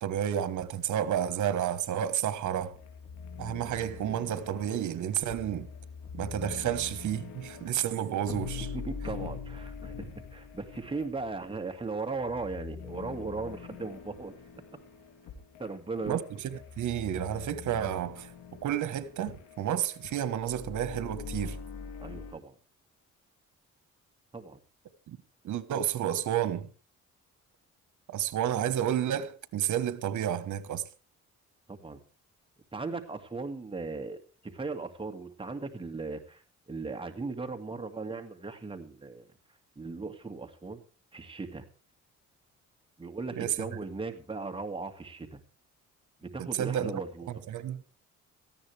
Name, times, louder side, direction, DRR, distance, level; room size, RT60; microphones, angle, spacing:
voice 1, 0.0-2.7 3.4-5.7 6.1-8.7 16.1-18.3 18.6-21.6 25.1-25.2 25.4-26.7 28.1-30.8 43.4-43.6 46.4-47.0 47.3-47.8, right 10 dB, 75° right, 1.5 m, -31 dB
sound 1, 2.7-22.3, left 6 dB, 90° left, 3.4 m, -43 dB
voice 2, 8.7-14.3 15.6-16.2 22.0-22.5 24.3-24.6 31.7-32.0 32.7-36.4 36.7-39.3 39.8-40.8 41.1-41.7 43.0-45.4 46.2-47.3, right 3 dB, 15° right, 2.2 m, -37 dB
18.0 x 14.5 x 3.4 m
cardioid pair, 90°, 30 cm